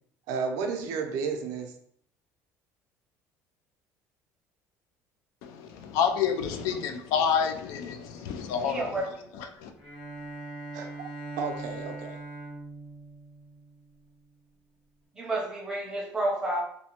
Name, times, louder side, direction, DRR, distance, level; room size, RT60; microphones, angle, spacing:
voice 1, 0.3-1.7 10.7-11.1 11.4-12.2, right 5 dB, 85° right, 0.5 m, -32 dB
voice 2, 5.4-8.9 9.6-9.7, left 7 dB, 80° left, 0.4 m, -28 dB
voice 3, 8.6-9.3 15.1-16.6, right 1 dB, 10° right, 0.5 m, -30 dB
Bowed string instrument, 9.7-14.2, right 2 dB, 65° left, 1.0 m, -41 dB
2.7 x 2.1 x 2.8 m
cardioid pair, 165°, 6 cm